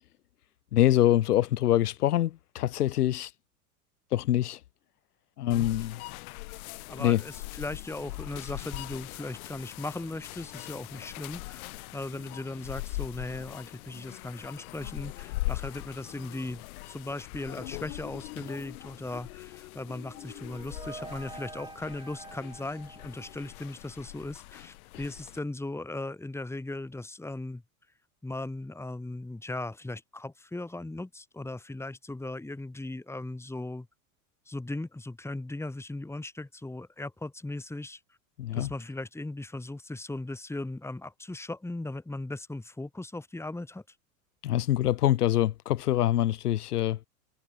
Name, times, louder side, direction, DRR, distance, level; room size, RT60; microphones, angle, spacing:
voice 1, 0.7-3.3 4.1-4.6 5.4-6.0 7.0-7.2 38.4-38.7 44.4-47.1, left 13 dB, 90° left, 1.1 m, -25 dB
sound 1, 5.5-25.4, left 21 dB, 70° left, 1.5 m, -41 dB
voice 2, 6.9-27.6 28.2-33.9 34.5-38.0 38.5-43.8, left 2 dB, 5° left, 2.8 m, -38 dB
sound 2, 20.0-23.9, right 3 dB, 10° right, 2.4 m, -47 dB
hypercardioid pair, 100°, 45 cm